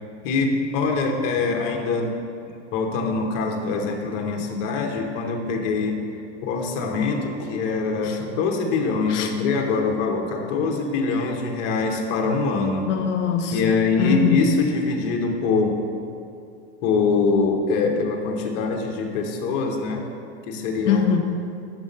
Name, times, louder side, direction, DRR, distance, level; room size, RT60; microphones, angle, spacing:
voice 1, 0.2-2.1 2.7-6.0 6.4-12.9 13.5-15.8 16.8-20.0 20.4-21.0, left 4 dB, 40° left, 2 dB, 0.9 m, -23 dB
voice 2, 12.8-14.4 20.8-21.2, left 7 dB, 85° left, 4 dB, 0.7 m, -23 dB
7.3 x 3.6 x 5.2 m, 2.5 s
hypercardioid pair, 135°, 35 cm